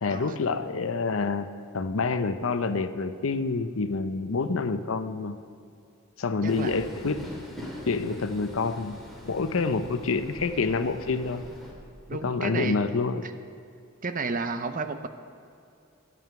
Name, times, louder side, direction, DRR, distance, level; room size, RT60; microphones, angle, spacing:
voice 1, 0.0-1.5 1.7-5.4 6.2-7.2 7.9-9.0 9.2-11.4 12.1-13.2, left 4 dB, 70° left, 11 dB, 0.6 m, -27 dB
voice 2, 6.4-6.7 9.5-9.8 12.1-12.8 13.2-13.3 14.0-15.1, right 4 dB, 40° right, 9 dB, 0.6 m, -32 dB
Train, 6.5-11.7, equal, ahead, 2.2 m, -43 dB
12.5 x 9.4 x 5.9 m, 2.5 s
head